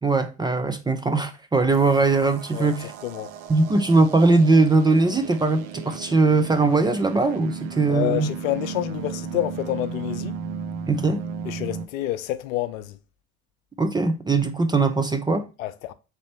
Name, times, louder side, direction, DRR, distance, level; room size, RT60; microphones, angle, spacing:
voice 1, 0.0-2.9 3.5-8.3 10.9-11.2 13.8-15.5, right 3 dB, 10° right, 0.3 m, -20 dB
sound 1, 1.7-11.9, right 6 dB, 55° right, 0.6 m, -35 dB
voice 2, 2.5-3.3 7.9-10.4 11.4-13.0 15.6-15.9, left 14 dB, 75° left, 0.5 m, -28 dB
4.0 x 3.4 x 2.8 m
figure-of-eight pair, 60°, 41 cm